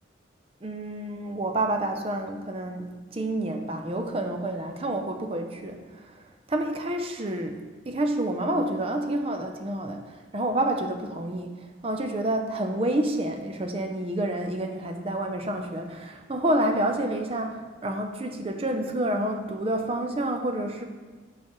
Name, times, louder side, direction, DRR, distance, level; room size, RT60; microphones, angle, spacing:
voice 1, 0.6-20.9, right 1 dB, 30° right, 4 dB, 0.5 m, -29 dB
7.1 x 6.5 x 3.0 m, 1.4 s
head